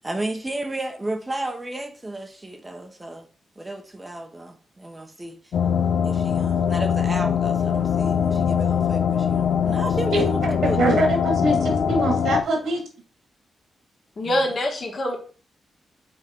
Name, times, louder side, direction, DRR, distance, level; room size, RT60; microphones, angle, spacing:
voice 1, 0.0-3.3 3.6-5.4 6.0-10.8 14.2-14.5, right 2 dB, 20° right, 1.0 m, -33 dB
sound 1, 5.5-12.4, left 7 dB, 70° left, 0.7 m, -22 dB
voice 2, 10.6-12.8, right 2 dB, 75° right, 2.3 m, -23 dB
voice 3, 14.2-15.2, left 1 dB, 50° left, 2.2 m, -25 dB
5.9 x 3.9 x 4.6 m
cardioid pair, 75°, 0 cm